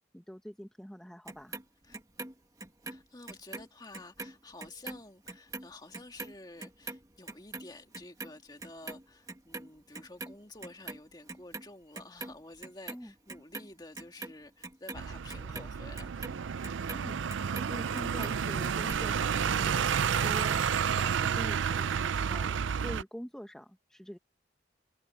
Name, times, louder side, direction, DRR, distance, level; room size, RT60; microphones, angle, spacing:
voice 1, 0.1-1.6 12.9-13.1 16.9-17.3 17.6-24.2, equal, 5° left, 1.0 m, -45 dB
Clock, 1.3-3.7 3.9-10.4 10.6-11.7 11.9-13.0 13.3-17.7 18.0-19.0 19.3-19.4, right 3 dB, 20° right, 1.6 m, -43 dB
voice 2, 2.9-16.3, left 2 dB, 20° left, 2.1 m, -50 dB
sound 1, 14.9-23.0, right 7 dB, 90° right, 0.5 m, -30 dB
head